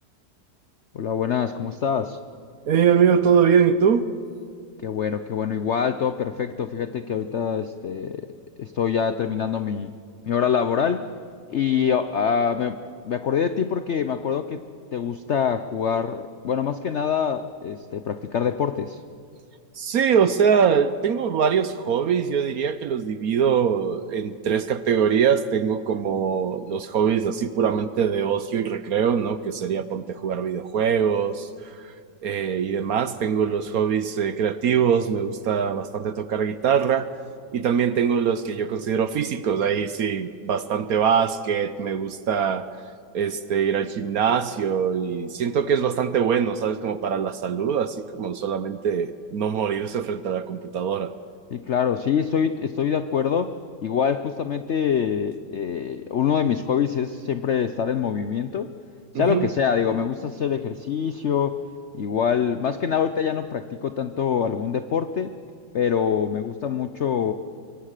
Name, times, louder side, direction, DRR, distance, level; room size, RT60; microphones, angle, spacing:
voice 1, 0.9-2.2 4.8-8.3 8.6-9.9 10.3-11.1 11.5-12.8 13.0-14.6 14.9-19.0 51.5-58.7 59.1-61.6 61.9-65.3 65.7-67.3, left 7 dB, 80° left, 10 dB, 0.6 m, -25 dB
voice 2, 2.6-4.0 19.7-31.9 32.2-37.1 37.5-42.7 43.1-51.1 59.1-59.5, right 7 dB, 60° right, 12 dB, 1.0 m, -23 dB
25.0 x 22.5 x 6.6 m, 2.3 s
omnidirectional pair, 2.1 m